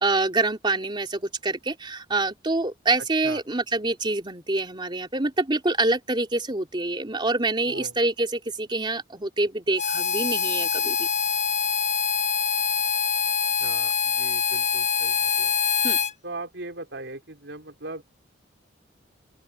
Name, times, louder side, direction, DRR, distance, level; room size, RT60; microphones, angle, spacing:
voice 1, 0.0-11.1 15.8-16.0, right 2 dB, 25° right, 3.1 m, -26 dB
Harmonica, 9.8-16.1, left 7 dB, 40° left, 1.5 m, -24 dB
voice 2, 13.6-15.5 16.2-18.0, right 2 dB, 75° right, 4.4 m, -39 dB
open air
head